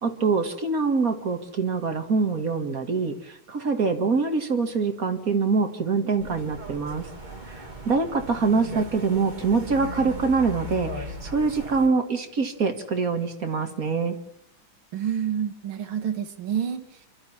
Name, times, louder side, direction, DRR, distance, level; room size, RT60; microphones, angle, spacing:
voice 1, 0.0-7.0 7.5-14.2, right 4 dB, 45° right, 6 dB, 2.1 m, -24 dB
sound 1, 6.2-11.9, equal, 20° right, 2.7 m, -37 dB
voice 2, 14.9-17.1, right 8 dB, 75° right, 5 dB, 2.4 m, -28 dB
27.5 x 12.5 x 8.7 m, 0.75 s
omnidirectional pair, 2.3 m